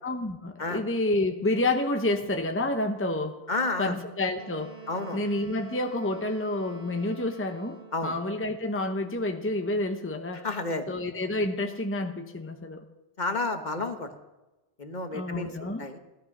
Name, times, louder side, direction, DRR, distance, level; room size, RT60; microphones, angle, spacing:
voice 1, 0.0-3.4 3.8-4.8 5.1-10.5 10.9-12.8 15.1-15.9, left 2 dB, 15° left, 5 dB, 0.9 m, -29 dB
voice 2, 3.5-3.9 4.9-5.2 7.9-8.1 10.4-11.0 13.2-14.1 14.8-16.0, left 3 dB, 45° left, 7 dB, 1.4 m, -31 dB
Wind instrument woodwind instrument, 4.4-8.3, right 6 dB, 75° right, 1.7 m, -47 dB
16.5 x 12.5 x 6.0 m, 1.1 s
omnidirectional pair, 1.1 m